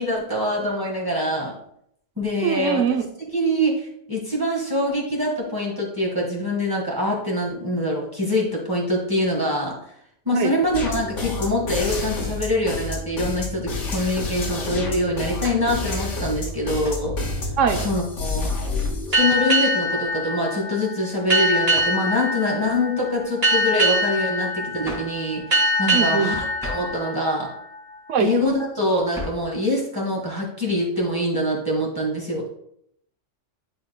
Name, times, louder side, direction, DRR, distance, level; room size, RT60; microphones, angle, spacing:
voice 1, 0.0-1.5 2.2-2.8 3.3-9.8 10.2-17.2 17.8-18.5 19.1-27.5 28.2-32.5, left 1 dB, 20° right, -3 dB, 1.5 m, -24 dB
voice 2, 2.4-3.1 10.3-10.5 17.6-17.8 25.9-26.3 28.1-28.3, right 7 dB, 85° right, 7 dB, 1.1 m, -22 dB
sound 1, 10.7-19.2, left 3 dB, 90° left, 1.6 m, -28 dB
sound 2, 15.4-15.7 16.8-17.1 17.7-18.1 19.3-19.6 21.7-22.0 24.8-25.2 26.6-27.0 29.1-29.5, left 1 dB, ahead, 1.8 m, -36 dB
sound 3, 19.1-28.3, equal, 55° right, 1.8 m, -24 dB
10.0 x 4.9 x 2.2 m, 0.71 s
omnidirectional pair, 1.2 m